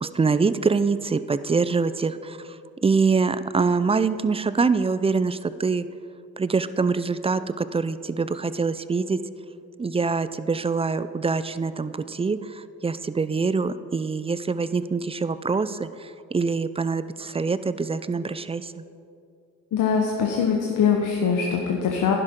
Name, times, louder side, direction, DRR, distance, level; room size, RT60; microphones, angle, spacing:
voice 1, 0.0-5.9 6.4-9.2 9.8-18.8, right 4 dB, 15° right, 14 dB, 0.4 m, -25 dB
voice 2, 19.7-22.2, left 6 dB, 65° left, 0 dB, 1.2 m, -22 dB
11.5 x 10.5 x 3.8 m, 2.5 s
supercardioid pair, 60°, 34 cm